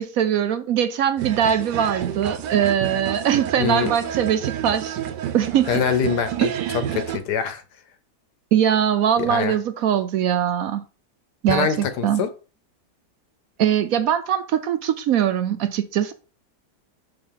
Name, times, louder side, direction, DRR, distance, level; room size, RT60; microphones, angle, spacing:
voice 1, 0.0-5.0 5.3-5.8 6.4-6.9 8.5-10.8 11.4-12.2 13.6-16.1, right 9 dB, 70° right, 0.9 m, -22 dB
sound 1, 1.2-7.2, right 9 dB, 85° right, 1.4 m, -30 dB
voice 2, 3.6-3.9 5.7-6.5 6.9-7.6 9.2-9.5 11.5-12.3, left 7 dB, 75° left, 1.5 m, -24 dB
5.8 x 3.9 x 5.5 m
omnidirectional pair, 1.8 m